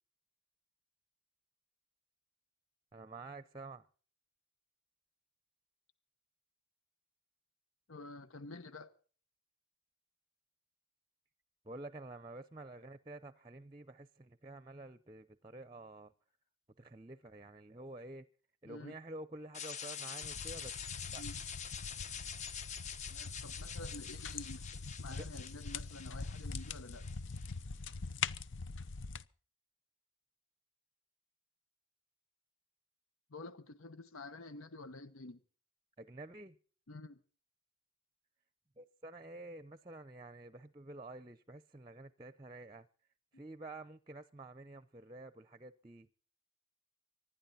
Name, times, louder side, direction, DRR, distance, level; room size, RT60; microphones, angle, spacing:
voice 1, 2.9-3.9 11.6-16.1 16.8-18.3 18.6-20.8 21.1-21.2 25.1-25.3 36.0-36.6 38.8-42.9 43.3-46.1, right 2 dB, 20° right, 0.6 m, -49 dB
voice 2, 7.9-8.9 18.6-19.0 21.2-21.4 23.1-27.1 33.3-35.4 36.9-37.2 43.3-43.4, left 2 dB, 85° left, 1.1 m, -49 dB
sound 1, 19.5-27.6, left 7 dB, 35° left, 0.9 m, -46 dB
sound 2, 20.2-29.2, left 5 dB, 60° left, 0.7 m, -43 dB
25.0 x 11.5 x 4.2 m
head